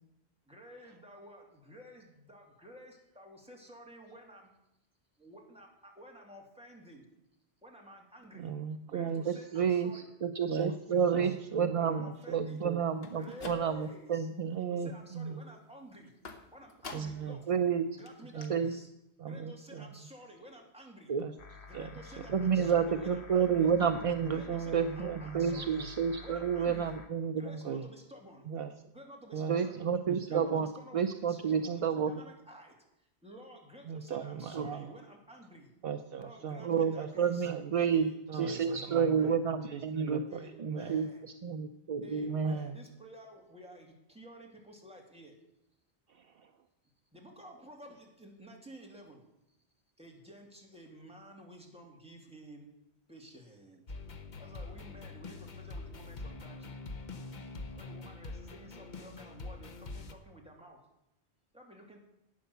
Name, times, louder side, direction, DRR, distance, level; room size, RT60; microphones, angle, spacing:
voice 1, 0.5-4.5 5.2-7.1 7.6-8.5 8.9-10.0 10.6-11.2 11.7-12.6 13.1-14.3 14.7-16.1 16.5-17.4 17.9-18.9 19.3-21.1 21.7-23.7 24.3-25.8 26.2-26.9 27.4-28.5 28.9-29.7 30.2-35.7 36.2-37.5 37.9-39.4 40.3-41.2 42.0-45.4 47.1-49.2 50.0-52.7 53.1-53.8 54.4-56.8 57.8-60.8 61.5-62.0, equal, 5° right, 0 dB, 2.4 m, -52 dB
voice 2, 8.3-9.4 10.5-12.9 14.5-15.4 16.9-17.4 18.3-18.6 19.2-20.0 21.2-21.3 21.7-22.7 23.5-23.7 24.2-26.0 27.4-27.9 28.5-28.7 29.3-30.6 31.6-32.1 33.8-34.9 35.8-37.1 37.4-37.7 38.3-39.3 39.7-41.0 42.2-42.8 46.1-46.5, right 6 dB, 65° right, 9 dB, 0.8 m, -39 dB
voice 3, 9.3-12.1 12.3-14.6 17.0-17.1 17.5-17.9 18.5-18.7 21.1-21.2 22.3-24.4 24.7-27.4 29.5-32.1 34.5-34.7 36.6-38.1 38.4-40.2 40.6-41.1 41.4-42.6, right 7 dB, 45° right, 9 dB, 0.5 m, -30 dB
sound 1, 12.9-14.1 14.5-15.0 16.2-17.4 17.7-17.8 18.1-18.2 18.4-18.5, left 3 dB, 65° left, 1.5 m, -48 dB
sound 2, 21.4-27.1, left 4 dB, 85° left, 1.3 m, -50 dB
sound 3, 53.9-60.1, left 3 dB, 45° left, 1.0 m, -44 dB
11.5 x 9.1 x 6.8 m, 0.85 s
omnidirectional pair, 1.1 m